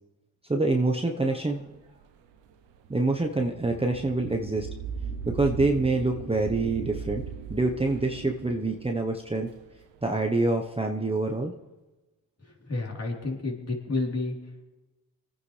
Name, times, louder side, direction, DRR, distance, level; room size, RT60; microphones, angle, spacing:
voice 1, 0.5-1.7 2.9-4.7 5.3-7.2 7.5-9.5 10.0-11.5, right 2 dB, 15° right, 2 dB, 1.0 m, -26 dB
sound 1, 1.5-10.5, right 7 dB, 85° right, 1.0 m, -38 dB
voice 2, 12.6-14.3, left 3 dB, 35° left, -2 dB, 3.7 m, -30 dB
26.0 x 9.6 x 3.3 m, 1.1 s
supercardioid pair, 50°, 42 cm